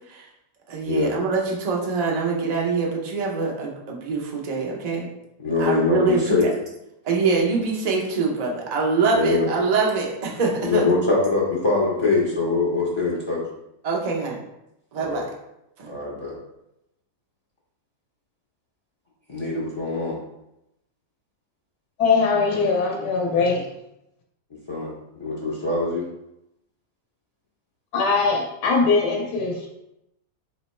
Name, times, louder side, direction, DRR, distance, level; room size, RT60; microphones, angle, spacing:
voice 1, 0.7-5.1 5.6-6.5 7.0-11.0 13.8-14.4 14.9-15.3 15.8-15.9, right 4 dB, 85° right, -2 dB, 0.3 m, -24 dB
voice 2, 5.4-6.5 9.1-9.5 10.7-13.4 15.0-15.2 15.9-16.4 19.3-20.2 24.5-26.1, left 3 dB, 50° left, -5 dB, 0.3 m, -23 dB
voice 3, 22.0-23.7 27.9-29.7, left 4 dB, 85° left, -1 dB, 1.2 m, -21 dB
3.2 x 2.9 x 4.2 m, 0.86 s
omnidirectional pair, 1.7 m